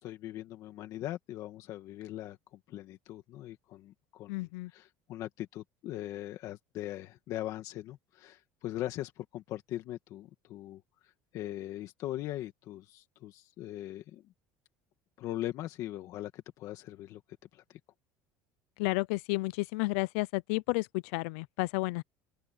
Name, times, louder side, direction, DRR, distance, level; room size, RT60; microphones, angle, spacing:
voice 1, 0.0-4.5 4.7-14.2 15.2-17.2 17.5-17.8, left 14 dB, 50° left, 1.9 m, -40 dB
voice 2, 4.3-4.7 18.8-22.0, left 24 dB, 90° left, 0.4 m, -31 dB
open air
cardioid pair, 150°, 7 cm